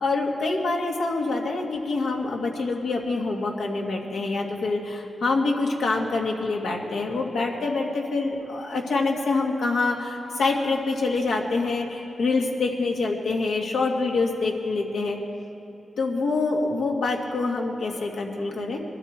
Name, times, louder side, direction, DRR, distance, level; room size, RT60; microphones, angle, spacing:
voice 1, 0.0-15.2 16.0-18.8, left 3 dB, 85° left, -1 dB, 2.1 m, -26 dB
22.0 x 13.5 x 4.5 m, 2.9 s
wide cardioid pair, 105°, 0 cm